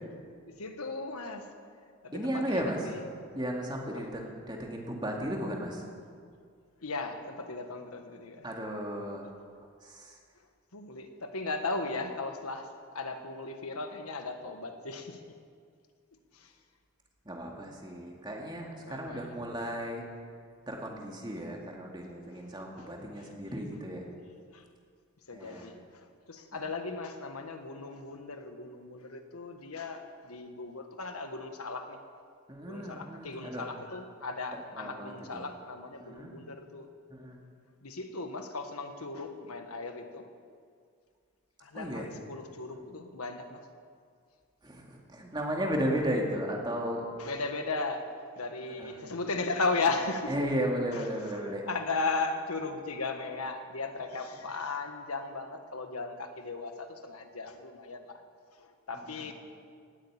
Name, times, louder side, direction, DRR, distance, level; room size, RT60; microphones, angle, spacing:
voice 1, 0.5-1.5 2.0-3.0 6.8-8.4 10.7-15.2 16.3-16.5 18.8-19.4 24.5-24.6 25.3-32.0 32.7-36.9 37.8-40.3 41.6-43.6 47.2-50.5 50.9-51.0 51.7-58.2 58.6-59.3, left 3 dB, 90° left, 6 dB, 1.5 m, -36 dB
voice 2, 2.1-2.9 3.3-5.8 8.4-9.3 9.6-10.2 17.2-20.0 20.7-24.1 25.3-25.7 26.5-26.6 32.5-33.6 34.7-35.5 36.0-36.3 37.1-37.4 41.7-42.1 44.6-47.1 48.7-49.0 50.3-51.6 58.9-59.3, equal, 20° right, 0 dB, 2.2 m, -35 dB
18.0 x 8.6 x 8.7 m, 2.1 s
head